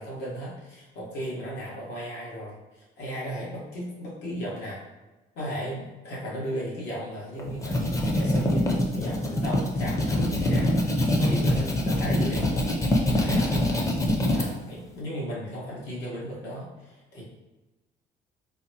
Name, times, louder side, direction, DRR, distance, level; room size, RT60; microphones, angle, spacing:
voice 1, 0.0-4.8 5.3-10.9 11.2-12.7 13.0-17.2, equal, 85° left, -5 dB, 1.3 m, -36 dB
sound 1, 7.4-14.5, left 1 dB, 20° left, 0.5 m, -24 dB
4.0 x 2.1 x 2.8 m, 1.1 s
cardioid pair, 110°, 17 cm